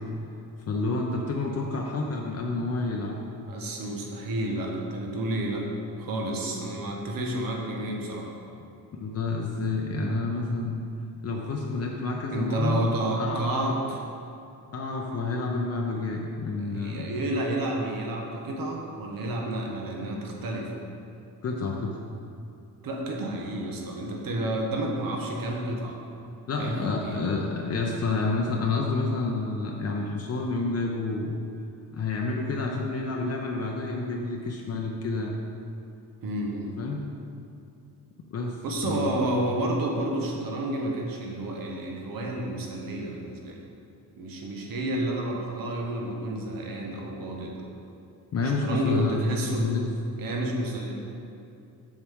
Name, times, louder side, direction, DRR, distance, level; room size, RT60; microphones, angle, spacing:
voice 1, 0.7-3.2 8.9-10.8 11.2-12.9 13.2-13.8 14.7-17.1 21.4-22.0 26.5-31.4 31.9-35.4 36.8-37.0 38.3-38.6 38.8-39.2 48.3-49.3 49.6-49.9, left 3 dB, 45° left, 0 dB, 0.7 m, -29 dB
voice 2, 3.4-5.7 6.0-8.3 12.3-14.0 16.6-20.7 22.8-26.0 26.6-26.8 27.0-27.2 36.2-36.8 38.6-43.6 44.2-47.6 48.4-49.7 50.2-50.9, right 1 dB, 70° right, 0 dB, 1.2 m, -30 dB
7.5 x 7.2 x 3.6 m, 2.6 s
cardioid pair, 130°, 36 cm